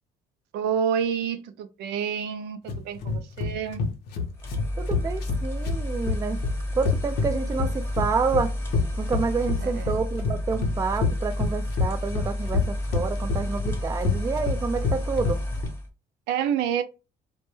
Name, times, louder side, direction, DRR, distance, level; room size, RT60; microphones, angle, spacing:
voice 1, 0.5-3.8 9.6-10.0 16.3-16.8, right 8 dB, 85° right, 0.4 m, -28 dB
sound 1, 2.7-15.7, left 4 dB, 75° left, 0.7 m, -28 dB
sound 2, 4.3-15.9, left 1 dB, 15° left, 0.8 m, -31 dB
voice 2, 4.8-6.4 6.8-8.5 9.0-15.4, right 5 dB, 20° right, 0.3 m, -28 dB
2.1 x 2.1 x 3.1 m
cardioid pair, 110°, 17 cm